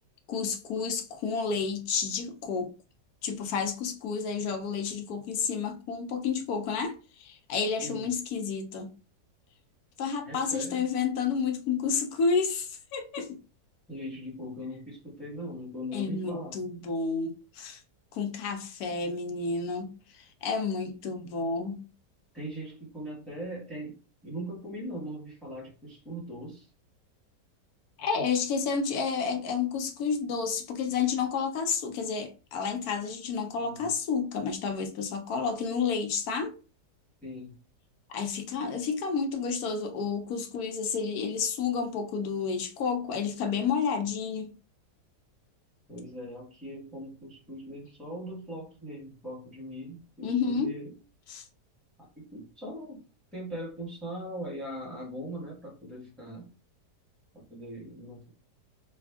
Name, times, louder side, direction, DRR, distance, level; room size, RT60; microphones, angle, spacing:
voice 1, 0.3-2.7 3.2-8.9 10.0-13.4 15.9-17.8 18.1-19.9 20.2-21.8 28.0-36.5 38.1-44.5 50.2-50.7 51.3-51.4, left 5 dB, 70° left, 1.1 m, -30 dB
voice 2, 10.2-10.8 13.9-16.6 22.3-26.7 33.6-33.9 37.2-37.6 38.6-38.8 45.9-51.0 52.2-53.0 53.3-56.5 57.3-58.3, equal, ahead, 1.1 m, -40 dB
3.3 x 2.3 x 3.4 m
omnidirectional pair, 1.8 m